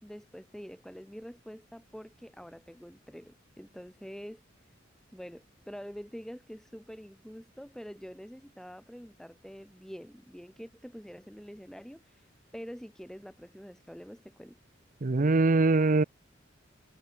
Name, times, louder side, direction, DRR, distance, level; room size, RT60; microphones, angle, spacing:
voice 1, 0.0-4.4 5.1-12.2 12.5-14.6, equal, 5° left, 3.4 m, -46 dB
voice 2, 15.0-16.0, right 3 dB, 45° right, 0.6 m, -23 dB
head